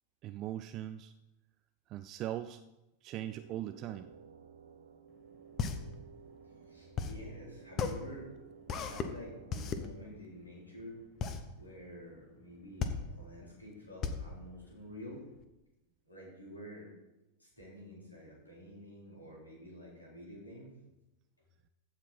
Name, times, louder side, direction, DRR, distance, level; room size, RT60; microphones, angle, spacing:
voice 1, 0.2-1.1 1.9-2.6 3.0-4.1, right 12 dB, 35° right, 10 dB, 0.4 m, -40 dB
sound 1, 3.2-9.8, right 7 dB, 65° right, 0.9 m, -56 dB
sound 2, 5.1-15.4, left 6 dB, 30° left, 1.0 m, -37 dB
voice 2, 6.7-8.3 8.8-11.0 11.5-15.2 16.1-16.9 17.4-20.7, equal, 80° left, -3 dB, 3.8 m, -49 dB
15.0 x 5.8 x 4.4 m, 0.98 s
figure-of-eight pair, 90°, 0 cm